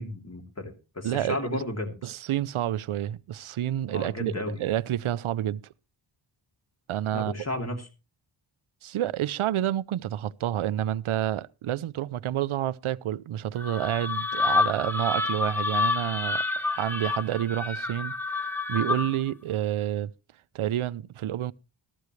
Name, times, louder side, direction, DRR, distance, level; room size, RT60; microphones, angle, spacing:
voice 1, 0.0-1.9 3.9-4.6 7.1-7.9, left 2 dB, 30° left, 2.8 m, -33 dB
voice 2, 1.0-1.6 2.0-5.6 6.9-7.3 8.8-20.1 20.5-21.5, right 12 dB, 80° right, 0.6 m, -29 dB
sound 1, 13.6-19.3, left 4 dB, 5° left, 1.0 m, -28 dB
13.5 x 13.0 x 3.1 m
wide cardioid pair, 110°, 49 cm